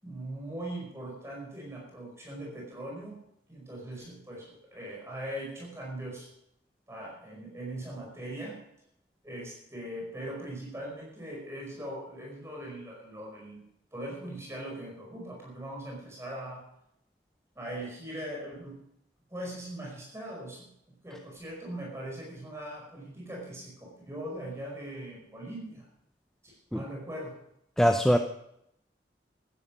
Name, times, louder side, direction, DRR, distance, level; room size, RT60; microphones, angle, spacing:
voice 1, 0.0-3.2 3.5-6.3 6.9-8.6 9.2-13.6 13.9-16.7 17.5-18.8 19.3-20.7 21.0-25.9 26.4-27.4, right 1 dB, 15° right, -2 dB, 5.0 m, -40 dB
voice 2, 27.8-28.2, equal, 5° left, 5 dB, 0.7 m, -22 dB
15.0 x 11.5 x 6.2 m, 0.77 s
head